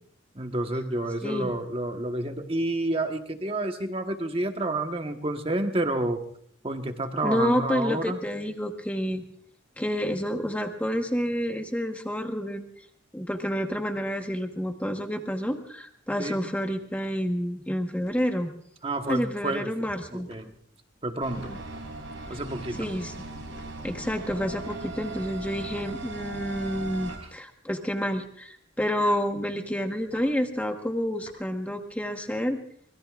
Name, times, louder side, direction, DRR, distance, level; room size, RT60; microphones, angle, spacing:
voice 1, 0.3-6.2 6.6-8.2 16.2-16.4 18.8-19.7 20.1-20.5 21.0-21.4 22.3-22.9, right 2 dB, 30° right, 5 dB, 1.3 m, -29 dB
voice 2, 7.2-9.2 9.8-12.6 13.1-18.5 19.1-20.3 21.4-21.6 22.3-22.4 22.8-23.1 23.8-32.6, equal, 5° left, 5 dB, 1.2 m, -29 dB
sound 1, 16.9-32.1, left 2 dB, 55° left, 6.3 m, -54 dB
sound 2, 21.2-27.2, right 2 dB, 85° right, 5.2 m, -38 dB
24.0 x 21.0 x 2.5 m, 0.63 s
head